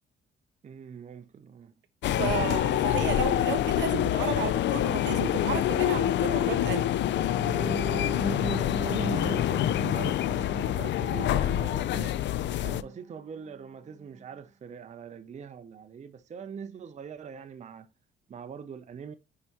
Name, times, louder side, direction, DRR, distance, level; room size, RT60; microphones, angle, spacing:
voice 1, 0.6-1.7 8.8-12.2 12.6-17.9 18.3-19.1, right 6 dB, 35° right, 0.6 m, -42 dB
sound 1, 2.0-12.8, left 12 dB, 65° left, 0.4 m, -26 dB
voice 2, 2.2-6.9, right 9 dB, 70° right, 1.1 m, -33 dB
sound 2, 7.1-13.0 13.5-13.6 14.0-14.2, right 3 dB, 5° right, 2.0 m, -37 dB
9.6 x 4.7 x 2.9 m
cardioid pair, 90°, 20 cm